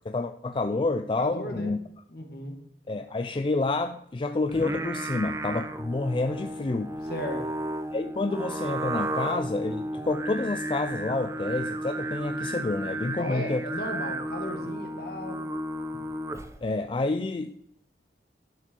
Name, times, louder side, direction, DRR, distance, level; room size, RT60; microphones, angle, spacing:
voice 1, 0.1-1.8 2.9-7.0 7.9-13.6 15.9-16.0 16.6-17.5, left 3 dB, 30° left, 8 dB, 0.4 m, -29 dB
voice 2, 1.2-1.7 2.1-2.6 7.1-7.5 13.2-15.4, left 1 dB, 55° left, 3 dB, 1.9 m, -35 dB
Singing, 4.5-16.7, right 1 dB, 15° right, 0.6 m, -33 dB
11.0 x 6.8 x 4.5 m, 0.70 s
head